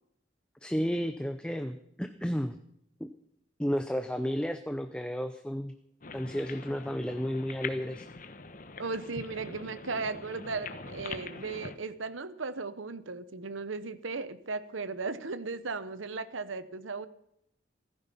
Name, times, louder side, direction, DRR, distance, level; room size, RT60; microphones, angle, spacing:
voice 1, 0.6-2.6 3.0-3.1 3.6-5.7 6.1-8.1, equal, 5° left, 8 dB, 0.6 m, -32 dB
sound 1, 6.0-11.8, left 4 dB, 45° left, 1.0 m, -43 dB
voice 2, 8.8-17.1, right 4 dB, 90° right, 14 dB, 1.0 m, -36 dB
16.0 x 13.5 x 5.6 m, 0.76 s
head